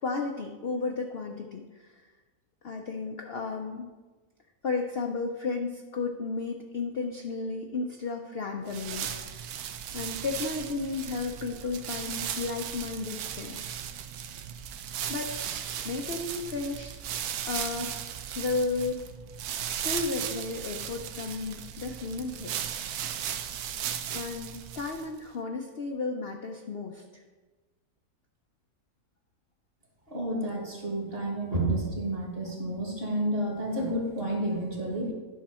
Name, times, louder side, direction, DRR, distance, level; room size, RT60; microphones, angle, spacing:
voice 1, 0.0-2.1 2.6-3.9 4.6-9.4 9.9-13.8 15.1-15.3 15.8-17.0 17.4-19.0 19.7-23.1 24.1-27.2, left 4 dB, 55° left, 2 dB, 0.7 m, -33 dB
sound 1, 8.7-25.2, right 9 dB, 75° right, 1.1 m, -36 dB
voice 2, 30.1-35.1, right 1 dB, 40° right, 0 dB, 1.8 m, -30 dB
10.5 x 5.8 x 4.3 m, 1.3 s
omnidirectional pair, 1.6 m